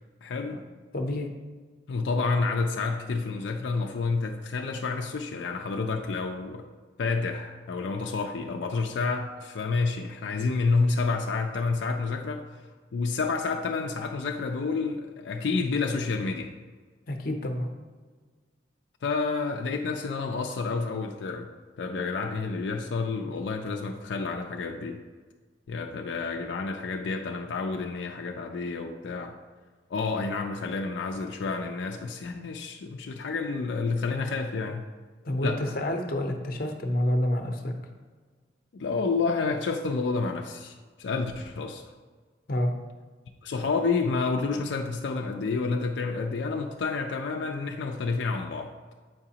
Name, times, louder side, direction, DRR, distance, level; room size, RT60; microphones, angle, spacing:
voice 1, 0.2-0.6 1.9-6.7 7.0-12.4 12.9-16.5 19.0-21.5 21.8-25.0 25.7-29.4 29.9-34.9 35.4-35.6 38.7-41.8 43.4-48.7, left 4 dB, 85° left, 3 dB, 0.4 m, -29 dB
voice 2, 0.9-1.3 17.1-17.7 35.2-37.7 42.5-42.7, left 1 dB, 55° left, 4 dB, 0.7 m, -28 dB
7.9 x 4.9 x 2.8 m, 1.5 s
head